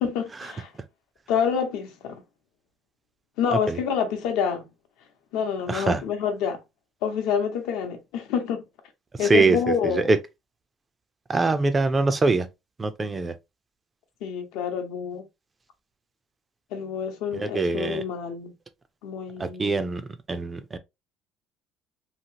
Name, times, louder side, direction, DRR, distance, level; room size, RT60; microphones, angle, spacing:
voice 1, 0.0-0.7 1.3-2.2 3.4-4.7 5.3-6.6 7.0-8.6 9.2-10.1 14.2-15.2 16.7-18.5 19.0-19.9, left 7 dB, 80° left, 0.8 m, -27 dB
voice 2, 5.7-6.0 9.1-10.2 11.3-12.5 12.8-13.3 17.3-18.0 19.4-20.8, right 3 dB, 15° right, 0.3 m, -23 dB
2.9 x 2.7 x 2.7 m
cardioid pair, 175°, 0 cm